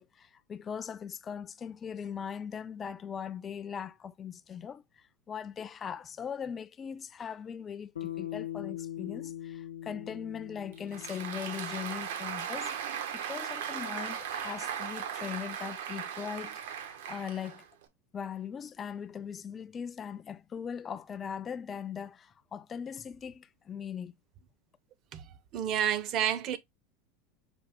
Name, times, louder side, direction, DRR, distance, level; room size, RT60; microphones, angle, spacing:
voice 1, 0.0-12.7 13.1-17.7 18.1-24.1, left 7 dB, 30° left, 0.4 m, -40 dB
Bass guitar, 8.0-12.4, left 12 dB, 90° left, 0.7 m, -41 dB
Applause, 10.7-17.8, right 8 dB, 70° right, 1.0 m, -37 dB
voice 2, 25.5-26.6, right 9 dB, 45° right, 0.8 m, -29 dB
6.0 x 2.4 x 3.5 m
hypercardioid pair, 95°, 0 cm